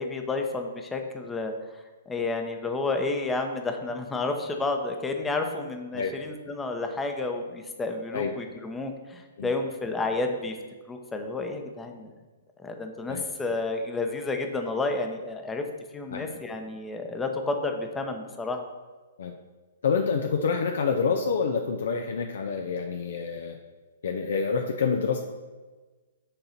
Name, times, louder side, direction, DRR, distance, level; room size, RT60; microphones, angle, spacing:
voice 1, 0.0-1.5 2.1-10.5 10.9-12.1 12.6-15.6 15.9-18.6, left 3 dB, 10° left, 4 dB, 0.8 m, -31 dB
voice 2, 19.8-23.5 24.0-25.2, left 5 dB, 65° left, 3 dB, 0.6 m, -27 dB
6.7 x 3.9 x 5.8 m, 1.3 s
figure-of-eight pair, 120°, 0 cm